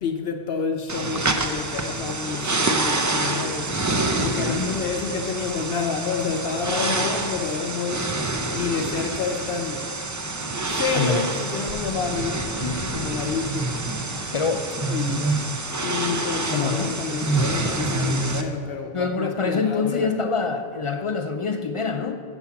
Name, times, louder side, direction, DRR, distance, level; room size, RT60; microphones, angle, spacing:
voice 1, 0.0-3.7 4.2-8.1 8.5-9.9 10.7-12.4 12.9-13.7 14.9-15.2 15.8-20.1, left 5 dB, 75° left, 0.8 m, -29 dB
sound 1, 0.9-18.4, right 2 dB, 30° right, 0.3 m, -27 dB
voice 2, 4.2-4.8 11.0-11.3 12.6-12.9 14.3-14.7 16.5-17.1 18.9-22.1, left 5 dB, 55° left, 0.3 m, -26 dB
7.9 x 7.1 x 5.8 m
omnidirectional pair, 1.0 m